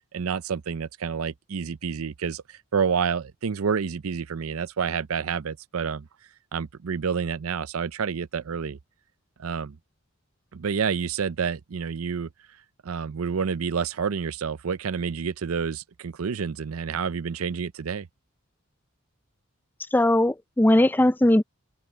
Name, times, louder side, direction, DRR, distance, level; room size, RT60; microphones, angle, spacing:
voice 1, 0.1-6.1 6.5-8.8 9.4-9.8 10.5-12.3 12.8-18.1, right 6 dB, 80° right, 0.5 m, -29 dB
voice 2, 19.9-21.4, left 1 dB, 10° left, 0.4 m, -19 dB
head